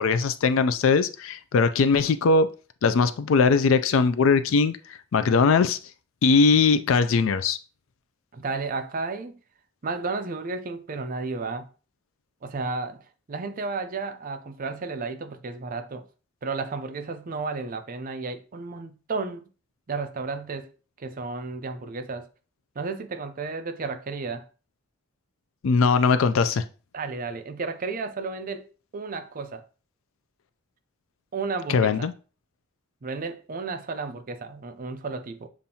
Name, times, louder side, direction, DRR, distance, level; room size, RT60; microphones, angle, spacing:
voice 1, 0.0-2.5 2.8-4.8 5.1-5.8 6.2-7.6 25.6-26.6 31.7-32.1, left 4 dB, 70° left, 0.4 m, -20 dB
voice 2, 8.3-9.4 9.8-11.7 12.4-16.1 16.4-19.5 19.9-20.7 21.0-22.3 22.8-24.5 26.9-29.7 31.3-32.1 33.0-35.5, right 4 dB, 40° right, 0.5 m, -33 dB
7.0 x 2.6 x 2.8 m
head